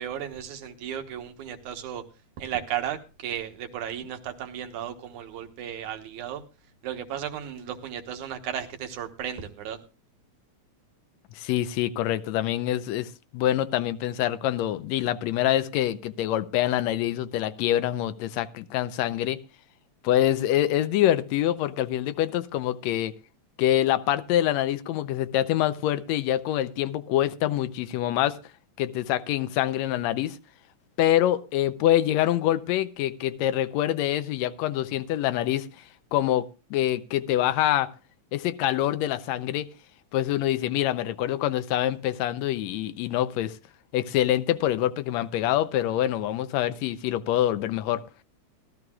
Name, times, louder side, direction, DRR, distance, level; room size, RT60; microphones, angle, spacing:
voice 1, 0.0-2.0 2.4-6.4 6.8-9.8, right 9 dB, 85° right, 6 dB, 2.6 m, -34 dB
voice 2, 11.3-19.4 20.0-23.1 23.6-28.4 28.8-30.4 31.0-35.7 36.1-37.9 38.3-39.7 40.1-43.6 43.9-48.0, left 12 dB, 75° left, 12 dB, 1.8 m, -25 dB
18.5 x 12.5 x 2.3 m, 0.31 s
omnidirectional pair, 3.4 m